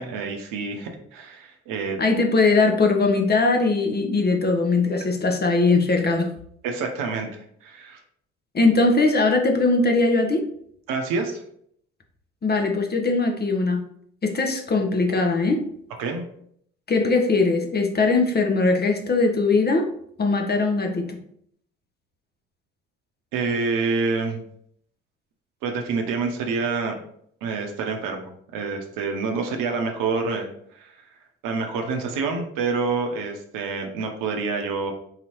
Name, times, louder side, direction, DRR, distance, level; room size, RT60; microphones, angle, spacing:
voice 1, 0.0-2.0 6.6-7.3 7.6-8.0 10.9-11.4 16.0-16.3 23.3-24.4 25.6-27.0 27.4-30.5 30.7-30.9 31.4-34.9, right 4 dB, 65° right, 4 dB, 0.8 m, -27 dB
voice 2, 2.0-6.3 8.5-10.4 12.4-13.8 14.2-15.6 16.9-19.9 20.2-21.2, left 3 dB, 25° left, 3 dB, 0.7 m, -20 dB
3.9 x 2.9 x 2.9 m, 0.68 s
hypercardioid pair, 50°, 36 cm